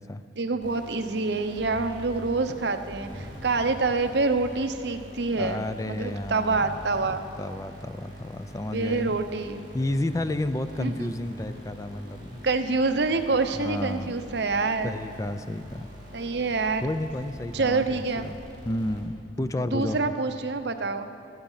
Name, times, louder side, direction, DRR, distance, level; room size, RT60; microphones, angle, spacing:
voice 1, 0.4-7.2 8.7-9.6 10.8-11.1 12.4-14.9 16.1-16.8 17.5-18.3 19.7-21.1, right 3 dB, 65° right, 8 dB, 0.8 m, -26 dB
sound 1, 0.6-19.4, equal, 25° right, 4.7 m, -44 dB
voice 2, 5.4-9.1 9.7-12.4 13.6-14.1 14.8-15.9 16.8-18.4 18.7-20.1, left 1 dB, 20° left, 10 dB, 0.4 m, -31 dB
19.0 x 13.5 x 5.7 m, 2.7 s
head